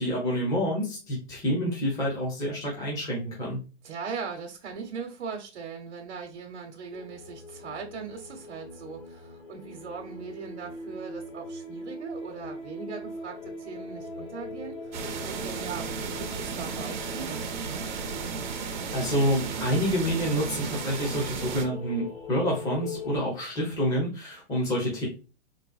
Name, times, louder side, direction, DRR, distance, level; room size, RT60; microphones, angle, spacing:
voice 1, 0.0-3.6 18.9-25.1, equal, 10° left, 0.8 m, -28 dB
voice 2, 3.8-14.9 15.2-17.4, right 5 dB, 70° right, 0.9 m, -39 dB
sound 1, 6.9-23.2, left 2 dB, 85° left, 1.3 m, -41 dB
sound 2, 14.9-21.6, right 6 dB, 45° right, 0.6 m, -34 dB
4.0 x 2.2 x 2.3 m
hypercardioid pair, 155°, 34 cm